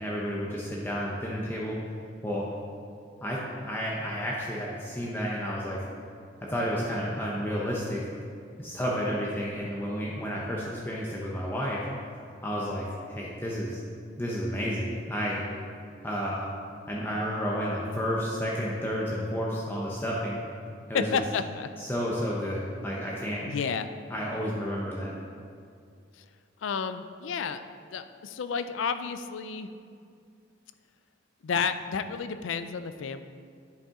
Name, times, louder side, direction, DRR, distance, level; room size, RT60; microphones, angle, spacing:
voice 1, 0.0-1.8 2.2-2.4 3.2-5.8 6.4-8.0 8.6-11.9 12.4-13.8 14.2-15.4 16.0-16.5 16.9-20.4 20.9-21.2 21.8-23.5 24.1-25.1, equal, 10° left, -4 dB, 0.6 m, -31 dB
voice 2, 20.9-21.7 23.5-23.9 26.2-26.3 26.6-27.6 27.9-29.7 31.4-33.2, left 6 dB, 85° left, 10 dB, 0.4 m, -31 dB
10.0 x 5.4 x 3.7 m, 2.3 s
head